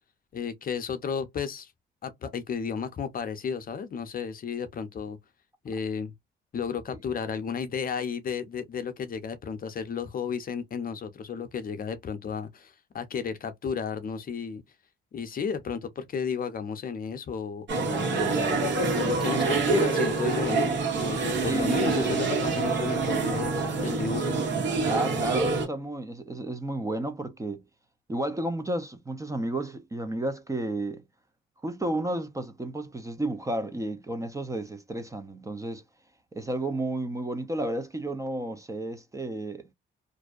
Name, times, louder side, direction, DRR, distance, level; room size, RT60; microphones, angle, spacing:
voice 1, 0.3-1.7 2.0-5.2 5.6-6.1 6.5-14.6 15.1-18.5 18.9-23.5 23.8-24.4, left 6 dB, 45° left, 0.6 m, -33 dB
sound 1, 17.7-25.7, right 4 dB, 65° right, 1.1 m, -26 dB
voice 2, 21.4-21.8 24.9-27.6 28.1-31.0 31.6-35.8 36.3-39.7, right 1 dB, 15° right, 0.5 m, -32 dB
2.5 x 2.1 x 2.3 m
cardioid pair, 90°, 20 cm